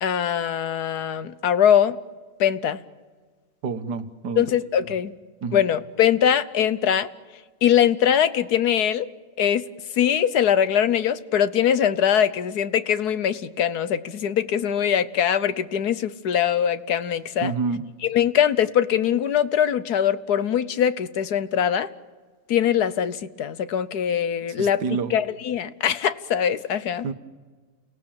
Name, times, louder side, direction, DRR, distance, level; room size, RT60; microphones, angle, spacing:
voice 1, 0.0-2.0 2.4-2.8 4.4-5.1 5.5-7.1 7.6-9.1 9.4-9.6 10.0-17.5 18.0-21.9 22.5-27.1, left 9 dB, 65° left, 14 dB, 1.4 m, -22 dB
voice 2, 3.6-4.4 5.4-5.6 17.4-17.8 24.6-25.1 27.0-27.1, right 5 dB, 75° right, 11 dB, 1.8 m, -27 dB
30.0 x 17.0 x 8.8 m, 1.4 s
omnidirectional pair, 1.8 m